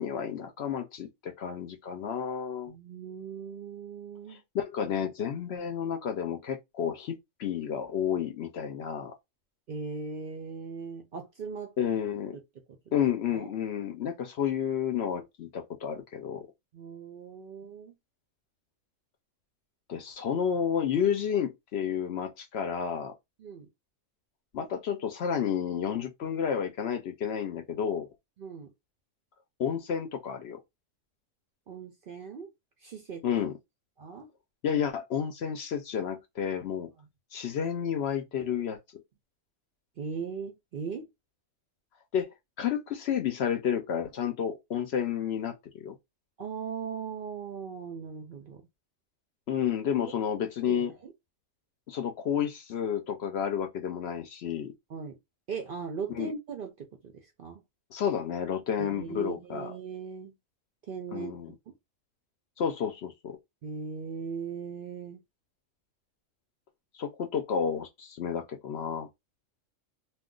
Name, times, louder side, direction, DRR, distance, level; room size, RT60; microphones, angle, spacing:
voice 1, 0.0-2.7 4.3-9.1 11.8-12.4 12.9-16.5 19.9-23.1 24.5-28.1 29.6-30.6 33.2-33.6 34.6-36.9 37.3-39.0 42.1-42.3 42.6-46.0 49.5-50.9 51.9-54.7 56.2-56.3 57.9-59.7 61.1-61.5 62.6-63.4 67.0-69.1, left 8 dB, 65° left, 0.7 m, -31 dB
voice 2, 2.7-4.4 9.7-11.7 12.3-12.4 12.9-13.0 13.3-13.5 16.7-17.9 23.4-23.7 28.4-28.7 31.7-32.5 32.8-33.3 34.0-34.3 37.0-37.1 40.0-41.1 46.4-48.6 50.0-50.1 50.7-51.1 54.9-55.2 55.5-57.6 58.8-60.3 60.9-61.7 63.6-65.2, right 5 dB, 60° right, 0.6 m, -39 dB
2.3 x 2.3 x 3.6 m
omnidirectional pair, 1.3 m